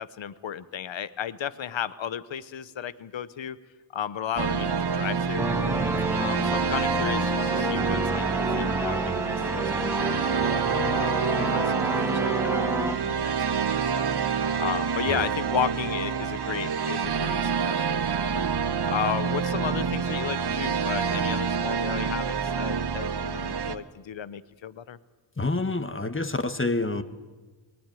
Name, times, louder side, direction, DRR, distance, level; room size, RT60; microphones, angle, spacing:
voice 1, 0.0-3.6 3.9-5.5 6.2-10.5 10.9-18.5 18.9-25.0, left 9 dB, 70° left, 15 dB, 1.0 m, -34 dB
sound 1, 4.4-23.8, right 6 dB, 55° right, 1.2 m, -27 dB
sound 2, 5.4-13.0, right 1 dB, 5° right, 0.8 m, -29 dB
voice 2, 25.4-27.0, left 2 dB, 25° left, 10 dB, 1.5 m, -27 dB
20.5 x 18.5 x 9.1 m, 1.3 s
cardioid pair, 50°, 47 cm